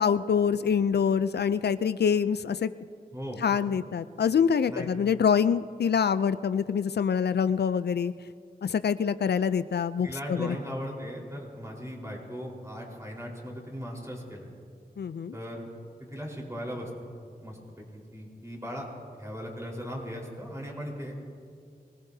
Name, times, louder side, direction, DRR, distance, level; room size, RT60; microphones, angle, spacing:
voice 1, 0.0-2.7 3.4-8.1 8.6-10.6 15.0-15.3, left 7 dB, 80° left, 14 dB, 0.4 m, -25 dB
voice 2, 3.1-3.4 4.7-4.9 10.0-14.5 15.3-15.7 16.0-16.9 17.4-17.8 18.1-18.9 19.2-21.3, equal, 20° right, -2 dB, 4.2 m, -38 dB
24.0 x 19.0 x 2.7 m, 2.3 s
wide cardioid pair, 60°, 17 cm